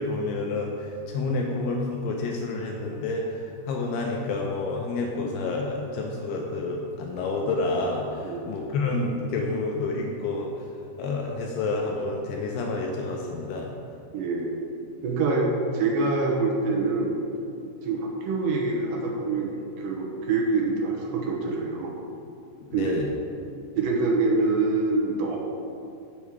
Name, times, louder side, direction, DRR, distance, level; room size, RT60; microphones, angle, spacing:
voice 1, 0.0-3.2 3.7-10.5 11.0-13.7 22.8-23.1, left 3 dB, 80° left, 0 dB, 2.4 m, -29 dB
voice 2, 14.1-14.6 15.0-17.2 17.8-21.9 22.7-22.9 23.8-25.4, right 3 dB, 75° right, -1 dB, 2.0 m, -25 dB
7.2 x 7.2 x 4.7 m, 2.5 s
omnidirectional pair, 5.2 m